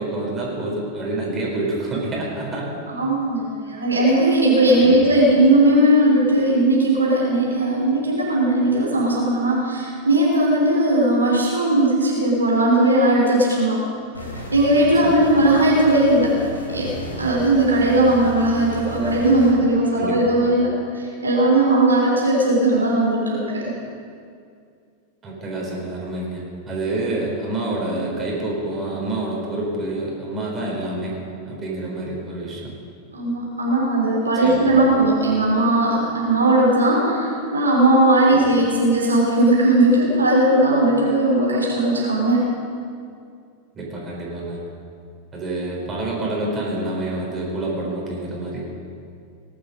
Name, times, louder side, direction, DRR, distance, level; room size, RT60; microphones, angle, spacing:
voice 1, 0.0-2.8 4.8-5.0 15.0-15.2 20.0-20.2 25.2-31.2 31.5-32.7 34.4-34.8 38.2-38.3 43.7-44.6 45.3-48.8, right 2 dB, 20° right, -3 dB, 4.5 m, -27 dB
voice 2, 2.9-13.8 14.5-16.3 16.7-16.9 17.2-23.7 33.1-42.5, right 1 dB, 75° right, -3 dB, 3.4 m, -18 dB
sound 1, 14.1-19.5, right 1 dB, 80° left, 2.9 m, -34 dB
19.0 x 11.5 x 5.2 m, 2.3 s
figure-of-eight pair, 90°, 0 cm